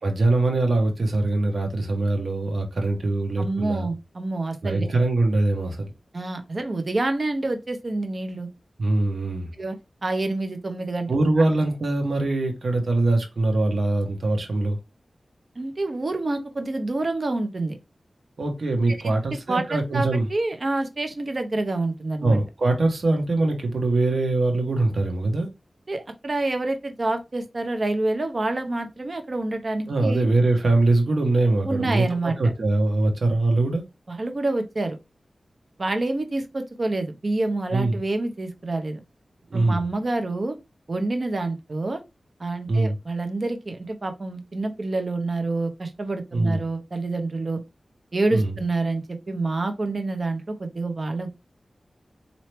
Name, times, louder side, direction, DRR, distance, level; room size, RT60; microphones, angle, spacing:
voice 1, 0.0-3.9 4.6-5.9 8.8-9.5 11.1-14.8 18.4-20.3 22.2-25.5 29.9-33.8 37.7-38.0 39.5-39.8 42.7-42.9 46.3-46.6 48.3-48.6, right 2 dB, 70° right, 1.1 m, -22 dB
voice 2, 3.4-4.9 6.1-8.5 9.6-11.2 15.6-17.8 19.0-19.1 19.5-22.4 25.9-30.3 31.6-32.3 34.1-35.0 35.8-39.0 39.5-40.6 40.9-42.0 42.4-47.6 48.1-51.3, right 2 dB, 50° right, 0.9 m, -27 dB
4.3 x 2.8 x 3.2 m
wide cardioid pair, 70°, 0 cm